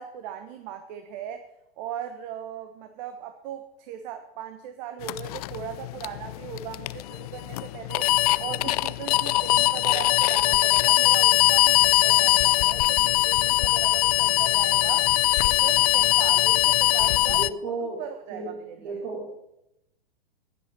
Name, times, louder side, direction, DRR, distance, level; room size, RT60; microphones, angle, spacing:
voice 1, 0.0-1.5 1.8-8.1 8.4-15.1 15.4-19.0, right 9 dB, 45° right, 8 dB, 1.3 m, -38 dB
sound 1, 5.0-17.5, left 18 dB, 40° left, 0.4 m, -21 dB
voice 2, 17.3-18.0 18.3-19.3, right 3 dB, 60° right, -2 dB, 4.7 m, -34 dB
15.5 x 11.0 x 4.5 m, 0.85 s
figure-of-eight pair, 105°, 31 cm